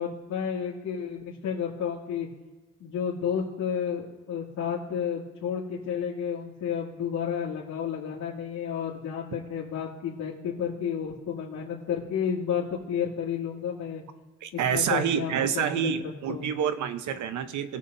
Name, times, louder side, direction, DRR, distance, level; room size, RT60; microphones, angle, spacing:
voice 1, 0.0-2.3 2.8-14.0 14.5-15.9 16.3-16.5, left 7 dB, 75° left, -8 dB, 2.4 m, -31 dB
voice 2, 14.4-17.8, right 8 dB, 75° right, 10 dB, 0.9 m, -28 dB
19.5 x 7.3 x 2.7 m, 1.3 s
cardioid pair, 90°, 30 cm